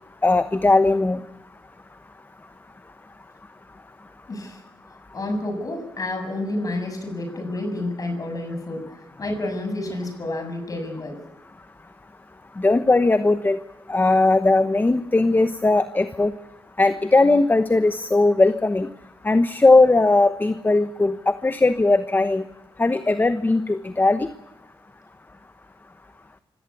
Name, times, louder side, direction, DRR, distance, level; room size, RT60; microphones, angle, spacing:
voice 1, 0.2-1.2 12.6-13.6 13.9-16.3 16.8-18.9 19.2-22.4 22.8-24.3, left 2 dB, 20° left, 11 dB, 1.0 m, -18 dB
voice 2, 4.3-4.6 5.1-8.9 9.2-11.2, left 2 dB, 40° left, 5 dB, 7.0 m, -29 dB
26.0 x 17.0 x 8.4 m, 0.98 s
wide cardioid pair, 110°, 9 cm